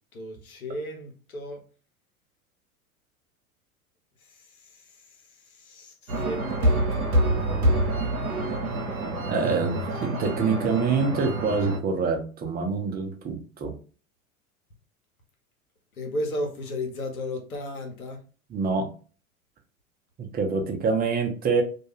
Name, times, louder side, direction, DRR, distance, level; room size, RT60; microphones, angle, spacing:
voice 1, 0.1-1.6 4.6-4.9 5.5-7.4 16.0-18.2, left 1 dB, 85° left, 0.8 m, -34 dB
sound 1, 6.1-11.8, right 1 dB, 90° right, 0.7 m, -26 dB
voice 2, 9.3-13.8 18.5-18.9 20.2-21.6, right 4 dB, 20° right, 0.6 m, -26 dB
2.3 x 2.2 x 3.0 m
hypercardioid pair, 85°, 42 cm